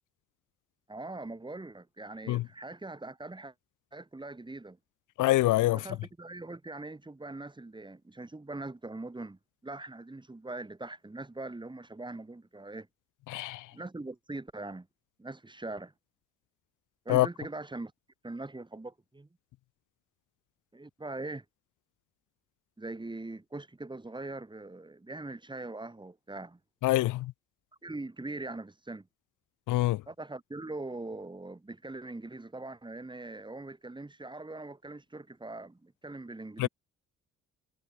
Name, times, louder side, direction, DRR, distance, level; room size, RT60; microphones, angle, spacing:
voice 1, 0.9-3.5 3.9-4.8 5.7-12.9 13.7-14.9 15.2-15.9 17.0-17.9 18.2-19.3 20.7-21.4 22.8-26.6 27.8-29.1 30.1-36.7, right 2 dB, 15° right, 4.7 m, -42 dB
voice 2, 5.2-5.8 13.3-13.6 17.1-17.3 26.8-27.3 29.7-30.0 36.6-36.7, left 17 dB, 85° left, 0.9 m, -25 dB
cardioid pair, 90°, 30 cm